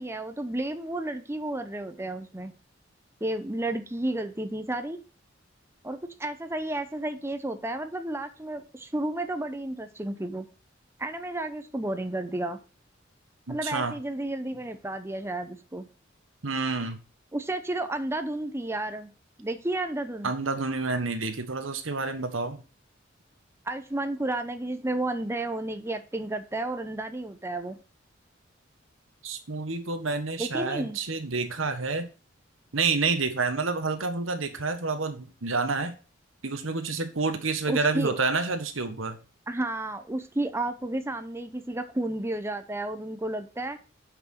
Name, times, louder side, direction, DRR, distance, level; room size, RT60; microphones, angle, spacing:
voice 1, 0.0-2.5 3.2-5.0 5.8-10.5 11.0-12.6 13.5-15.9 17.3-19.1 19.4-20.3 23.6-27.8 30.4-31.0 37.7-38.2 39.5-43.8, right 1 dB, 15° right, 0.8 m, -32 dB
voice 2, 13.5-13.9 16.4-17.0 20.2-22.6 29.2-32.1 32.7-36.0 36.4-39.2, right 4 dB, 90° right, 1.5 m, -29 dB
8.0 x 6.0 x 4.4 m
head